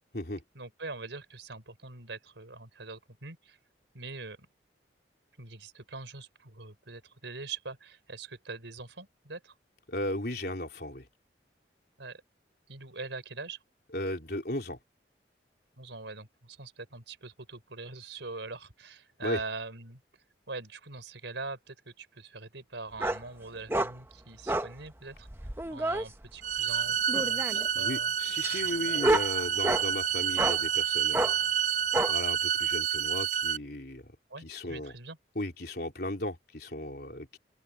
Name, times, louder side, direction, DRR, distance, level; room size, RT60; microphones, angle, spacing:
voice 1, 0.5-3.6 3.9-4.4 5.4-9.5 12.0-12.2 12.7-13.6 15.8-20.0 20.5-28.1 34.3-35.2, right 3 dB, 85° right, 4.5 m, -43 dB
voice 2, 9.9-11.1 13.9-14.8 19.2-19.4 27.7-31.3 32.1-34.1 34.4-34.9 35.4-37.4, left 1 dB, 60° left, 3.8 m, -35 dB
sound 1, 23.0-23.2 23.7-23.9 24.5-24.7 25.3-26.0 27.1-27.7 28.4-29.9 30.4-30.6 31.1-31.3 31.9-32.1, right 1 dB, 15° right, 0.9 m, -29 dB
sound 2, 26.4-33.6, right 9 dB, 40° right, 0.5 m, -29 dB
open air
head